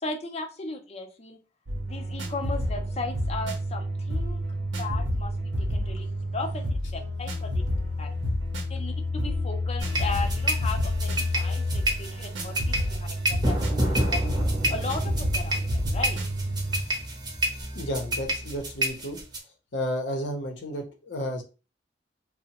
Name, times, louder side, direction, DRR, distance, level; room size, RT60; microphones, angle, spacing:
voice 1, 0.0-1.4 1.8-4.4 4.8-6.1 6.3-7.5 8.0-8.1 8.7-14.2 14.7-16.2, left 3 dB, 35° left, 4 dB, 0.5 m, -36 dB
sound 1, 1.7-16.9, left 1 dB, 90° right, 0.6 m, -29 dB
sound 2, 9.8-19.4, right 1 dB, 25° right, 0.6 m, -29 dB
voice 2, 17.7-19.2 19.7-21.4, equal, 75° left, 3 dB, 0.7 m, -32 dB
2.8 x 2.0 x 2.8 m, 0.32 s
head